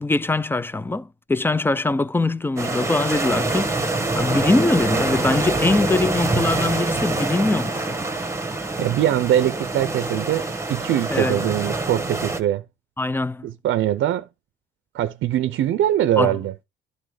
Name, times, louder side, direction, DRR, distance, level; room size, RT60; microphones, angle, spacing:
voice 1, 0.0-3.7 4.2-8.0 11.1-11.4 13.0-13.5 16.2-16.4, left 2 dB, 10° left, 0.5 m, -22 dB
sound 1, 2.6-12.4, right 2 dB, 15° right, 1.3 m, -25 dB
voice 2, 8.8-12.6 13.4-14.3 14.9-16.5, right 12 dB, 75° right, 0.6 m, -22 dB
11.0 x 4.1 x 4.8 m
cardioid pair, 90°, 20 cm